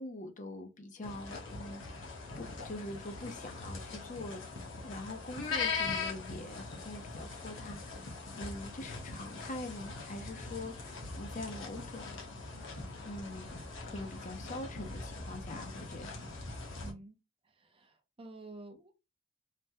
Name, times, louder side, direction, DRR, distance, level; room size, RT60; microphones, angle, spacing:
voice 1, 0.0-2.1 2.4-4.4 4.8-12.3 13.0-13.6 13.9-16.2, left 2 dB, 40° left, 0.5 m, -44 dB
sound 1, 1.0-16.9, left 4 dB, 70° left, 1.0 m, -41 dB
voice 2, 16.8-17.2 17.6-19.0, right 2 dB, 25° right, 0.5 m, -50 dB
3.3 x 2.2 x 2.7 m
head